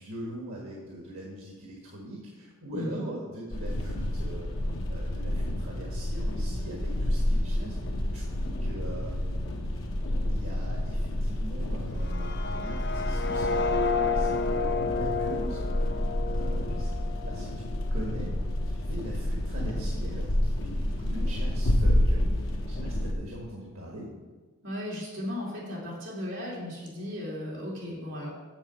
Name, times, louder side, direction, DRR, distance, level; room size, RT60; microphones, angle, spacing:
voice 1, 0.0-4.5 4.9-7.8 8.1-9.4 10.3-15.7 16.2-16.9 17.2-17.6 17.9-18.3 18.7-24.1, right 1 dB, 80° right, -2 dB, 1.5 m, -42 dB
voice 2, 2.7-3.0 24.6-28.3, left 1 dB, 55° right, -5 dB, 3.0 m, -36 dB
sound 1, 3.5-23.1, left 1 dB, 70° left, 1.0 m, -29 dB
sound 2, 11.9-17.9, left 4 dB, 50° left, 0.5 m, -31 dB
7.1 x 6.9 x 5.8 m, 1.4 s
head